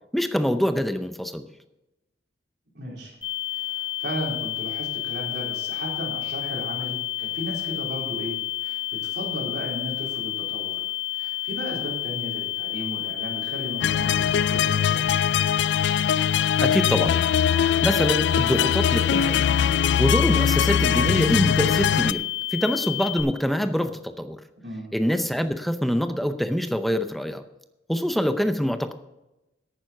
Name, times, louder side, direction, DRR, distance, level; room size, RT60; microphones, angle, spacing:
voice 1, 0.1-1.5 16.6-17.2 17.8-19.5 20.0-22.2 22.5-24.4 24.9-27.4 27.9-28.9, equal, ahead, 9 dB, 0.7 m, -24 dB
voice 2, 2.7-3.2 3.5-10.8 11.1-15.1 24.6-24.9, equal, 70° right, -3 dB, 4.0 m, -35 dB
sound 1, 3.2-23.2, left 16 dB, 25° left, 3.2 m, -30 dB
sound 2, 13.8-22.1, left 8 dB, 80° left, 0.3 m, -22 dB
11.0 x 9.3 x 5.8 m, 0.97 s
head